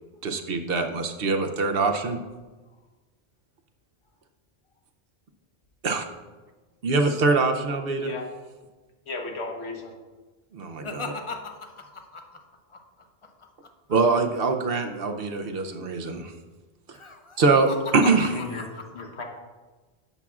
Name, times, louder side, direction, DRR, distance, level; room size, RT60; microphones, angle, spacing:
voice 1, 0.2-2.2 5.8-6.1 6.8-8.2 10.5-11.1 13.9-16.3 17.4-18.3, right 3 dB, 65° right, 5 dB, 0.8 m, -23 dB
voice 2, 7.9-8.3 9.1-9.9 18.0-18.7 18.9-19.2, left 3 dB, 75° left, 2 dB, 1.4 m, -35 dB
voice 3, 10.8-12.4 12.7-13.7 16.9-17.4 17.7-18.3 18.6-19.2, left 3 dB, 35° left, 5 dB, 0.7 m, -39 dB
11.0 x 7.2 x 2.4 m, 1.2 s
omnidirectional pair, 1.1 m